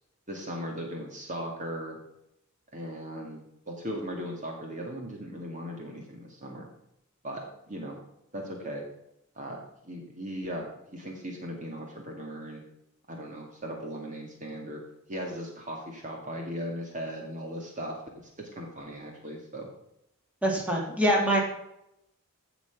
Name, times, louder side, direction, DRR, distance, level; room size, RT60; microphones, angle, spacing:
voice 1, 0.3-2.0 2.7-6.7 7.2-8.0 8.3-8.8 9.4-12.6 13.1-14.8 15.1-18.0 18.4-19.7, equal, 35° right, 1 dB, 2.2 m, -38 dB
voice 2, 20.4-21.4, equal, 5° right, -2 dB, 3.0 m, -24 dB
16.0 x 6.2 x 6.0 m, 0.82 s
head